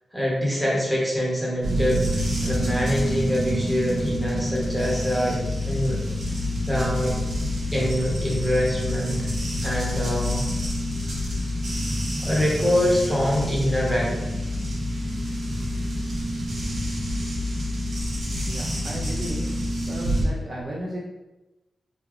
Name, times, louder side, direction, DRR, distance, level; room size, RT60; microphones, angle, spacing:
voice 1, 0.1-5.4 5.7-6.0 6.3-6.4 6.7-7.2 7.7-9.3 9.6-10.4 12.2-14.2, equal, ahead, -5 dB, 0.8 m, -24 dB
sound 1, 1.6-20.3, left 1 dB, 75° right, 0.9 m, -27 dB
voice 2, 18.4-19.5 19.9-21.0, right 1 dB, 30° right, -6 dB, 0.4 m, -34 dB
3.7 x 2.2 x 3.0 m, 1.1 s
wide cardioid pair, 170°, 0 cm